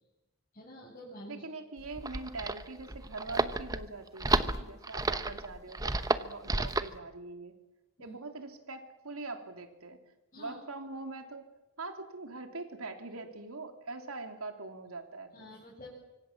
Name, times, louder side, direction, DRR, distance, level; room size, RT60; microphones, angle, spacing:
voice 1, 0.5-1.4 8.0-8.2 10.3-10.6 15.3-15.9, left 1 dB, 35° left, -5 dB, 7.3 m, -48 dB
voice 2, 1.3-7.5 8.0-10.0 10.4-11.4 11.8-15.5, right 3 dB, 75° right, 6 dB, 3.0 m, -43 dB
sound 1, 1.8-7.0, right 2 dB, 15° right, 0.9 m, -31 dB
25.5 x 25.0 x 7.3 m, 1.0 s
head